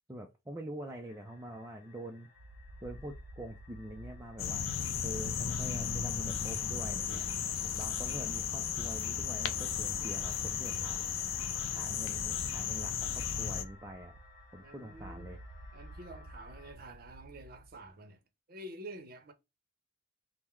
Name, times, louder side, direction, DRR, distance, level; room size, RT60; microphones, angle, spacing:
voice 1, 0.1-2.3 2.8-4.7 5.0-7.2 7.8-11.1 11.8-14.1 14.5-15.4, right 1 dB, 15° right, 0.4 m, -45 dB
sound 1, 1.0-16.7, left 4 dB, 40° left, 1.1 m, -60 dB
sound 2, 2.4-17.9, right 1 dB, 85° right, 0.7 m, -52 dB
sound 3, 4.4-13.6, left 8 dB, 70° left, 0.5 m, -35 dB
voice 2, 14.6-15.3 15.7-18.2 18.5-19.3, right 1 dB, 45° right, 0.7 m, -48 dB
3.6 x 2.1 x 4.4 m
head